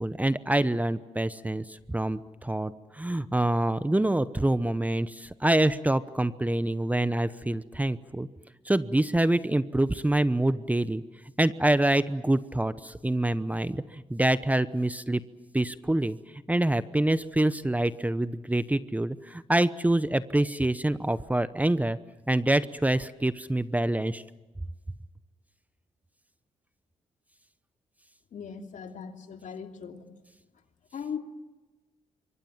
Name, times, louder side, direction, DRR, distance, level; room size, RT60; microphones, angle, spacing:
voice 1, 0.0-8.3 8.7-11.0 11.4-15.2 15.5-16.2 16.5-22.0 22.3-24.2, right 1 dB, 10° right, 14 dB, 0.9 m, -26 dB
voice 2, 28.3-30.0 30.9-31.2, left 7 dB, 65° left, 5 dB, 2.8 m, -38 dB
26.5 x 23.5 x 7.4 m, 1.2 s
cardioid pair, 75°, 14 cm